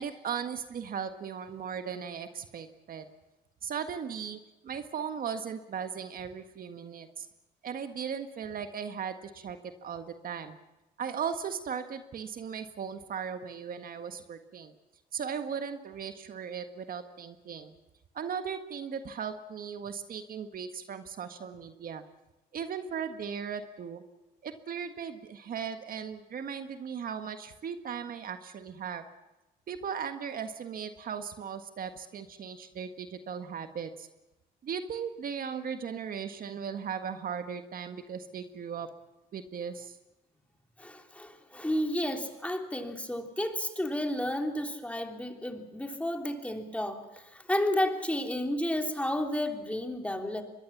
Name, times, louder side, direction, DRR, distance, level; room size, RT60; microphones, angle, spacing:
voice 1, 0.0-3.0 3.6-7.3 7.6-10.6 11.0-14.7 15.1-17.7 18.1-22.0 22.5-24.0 24.4-29.0 29.7-34.1 34.6-38.9 39.3-40.0, right 7 dB, 50° right, 8 dB, 1.7 m, -37 dB
voice 2, 40.8-50.4, left 1 dB, 5° left, 4 dB, 3.2 m, -32 dB
24.5 x 21.5 x 7.3 m, 1.0 s
cardioid pair, 90°, 19 cm